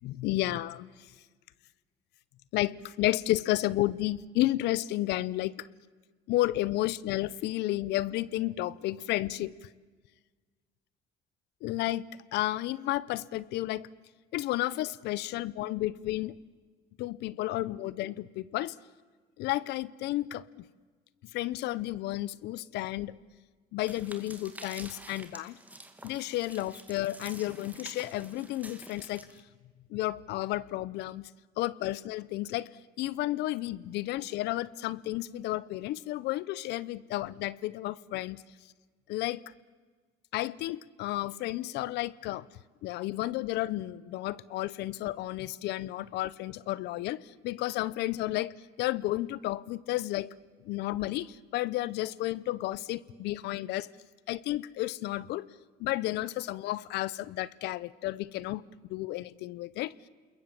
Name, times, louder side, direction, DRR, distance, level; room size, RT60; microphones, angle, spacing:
voice 1, 0.0-0.9 2.5-5.7 6.3-9.5 11.6-13.9 14.3-16.3 17.0-18.7 19.4-20.6 21.3-23.2 23.7-25.6 26.0-29.3 29.9-31.3 31.6-32.7 33.0-38.4 39.1-39.4 40.3-42.5 42.8-48.5 48.8-50.3 50.6-53.9 54.3-55.5 55.8-58.6 58.9-59.9, left 16 dB, 80° left, 20 dB, 0.7 m, -32 dB
sound 1, 23.9-29.4, right 2 dB, 10° right, 2.3 m, -49 dB
28.0 x 21.5 x 7.5 m, 1.4 s
cardioid pair, 110°, 17 cm